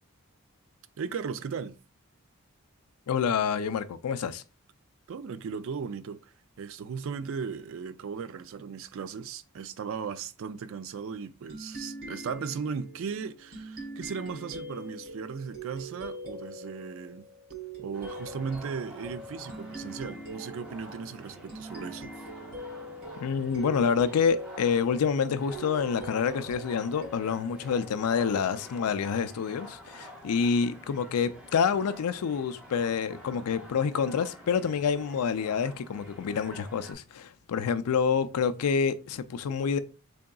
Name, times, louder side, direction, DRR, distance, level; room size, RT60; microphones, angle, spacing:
voice 1, 1.0-1.8 5.1-17.3 17.8-22.1, right 6 dB, 60° right, 0.3 m, -37 dB
voice 2, 3.1-4.4 23.2-39.8, left 6 dB, 85° left, 0.4 m, -27 dB
sound 1, 11.5-28.7, right 2 dB, 45° right, 1.4 m, -43 dB
sound 2, 17.9-36.9, equal, 5° right, 0.7 m, -48 dB
3.8 x 3.5 x 2.3 m
head